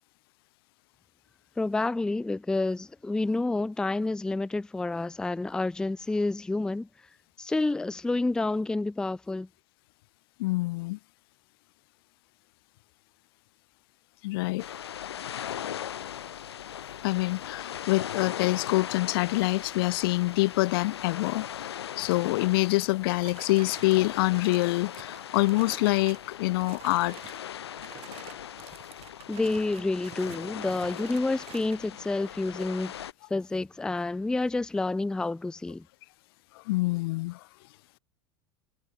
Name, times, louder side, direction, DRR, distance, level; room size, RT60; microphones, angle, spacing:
voice 1, 1.6-6.9 7.4-9.5 29.3-33.0 33.3-35.8, left 2 dB, 5° left, 0.4 m, -29 dB
voice 2, 10.4-11.0 14.2-14.6 17.0-27.2 36.7-37.4, left 21 dB, 65° left, 0.5 m, -26 dB
sound 1, 14.6-33.1, left 10 dB, 85° left, 2.7 m, -39 dB
sound 2, 22.8-26.3 26.6-27.4 27.7-31.8, right 15 dB, 50° right, 4.8 m, -49 dB
hypercardioid pair, 85°, 13 cm